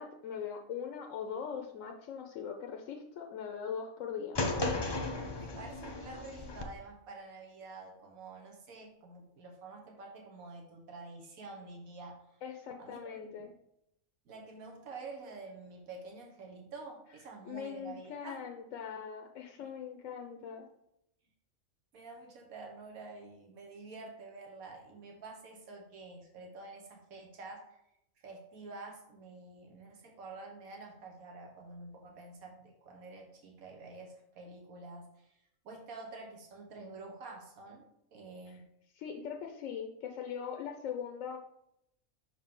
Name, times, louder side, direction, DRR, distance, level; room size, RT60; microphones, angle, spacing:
voice 1, 0.0-4.4 12.4-13.5 17.4-20.7 38.5-38.6 39.0-41.4, left 7 dB, 70° left, 3 dB, 1.0 m, -41 dB
sound 1, 4.3-6.6, left 2 dB, 40° left, 0.4 m, -35 dB
voice 2, 5.3-12.2 12.8-13.5 14.2-18.5 19.6-19.7 21.9-27.8 28.2-35.3 35.6-38.6, right 3 dB, 80° right, 1 dB, 1.6 m, -48 dB
6.0 x 4.6 x 3.7 m, 0.78 s
omnidirectional pair, 1.5 m